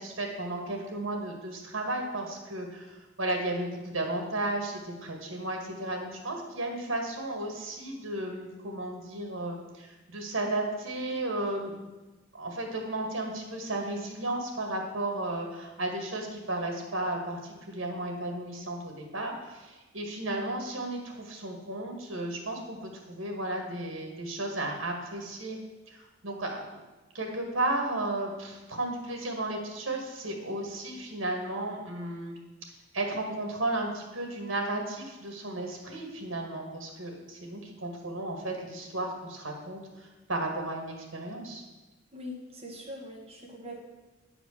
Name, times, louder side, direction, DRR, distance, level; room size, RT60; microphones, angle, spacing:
voice 1, 0.0-11.9 12.3-25.6 25.9-26.6 27.1-32.4 32.9-41.6, right 2 dB, 80° right, 2 dB, 2.0 m, -34 dB
voice 2, 42.1-43.8, left 1 dB, 30° right, -2 dB, 1.9 m, -42 dB
9.2 x 5.0 x 6.6 m, 1.1 s
head